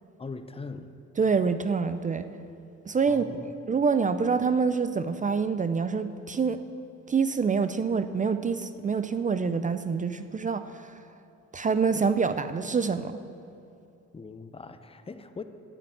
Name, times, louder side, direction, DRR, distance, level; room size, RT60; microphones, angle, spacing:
voice 1, 0.2-1.0 3.1-3.5 14.1-15.4, left 4 dB, 20° left, 10 dB, 0.6 m, -41 dB
voice 2, 1.2-2.3 2.9-6.6 7.1-10.9 11.5-13.2, right 5 dB, 25° right, 11 dB, 0.4 m, -26 dB
9.0 x 8.0 x 8.6 m, 2.6 s
cardioid pair, 90°, 30 cm